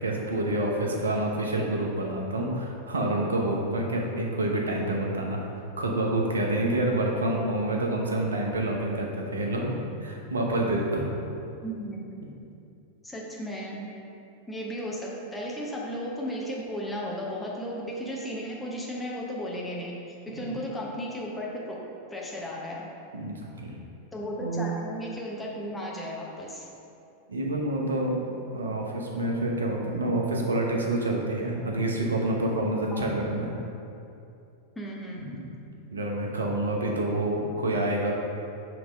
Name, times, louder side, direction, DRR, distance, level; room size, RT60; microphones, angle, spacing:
voice 1, 0.0-9.7 10.0-11.0 20.4-20.5 23.1-23.8 24.4-24.7 27.3-28.2 28.5-33.5 35.2-35.5 35.9-38.1, right 1 dB, 70° right, 0 dB, 0.8 m, -28 dB
voice 2, 11.6-12.2 13.0-13.8 14.5-20.0 20.3-21.8 22.1-22.9 24.1-26.7 32.9-33.2 34.8-35.4, equal, 5° left, -4 dB, 1.0 m, -35 dB
6.0 x 3.3 x 5.0 m, 2.7 s
figure-of-eight pair, 90°, 0 cm